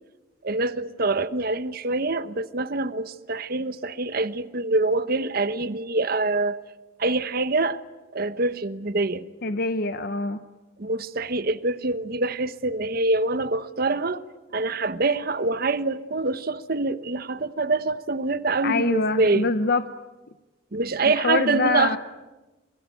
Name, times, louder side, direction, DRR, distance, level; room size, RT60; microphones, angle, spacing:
voice 1, 0.4-6.6 7.0-7.8 8.1-9.3 10.8-14.2 14.5-19.5 20.7-22.0, right 3 dB, 50° right, 1.0 m, -25 dB
voice 2, 9.4-10.4 18.6-19.8 21.1-22.0, left 3 dB, 50° left, 0.8 m, -24 dB
28.5 x 21.0 x 9.2 m
head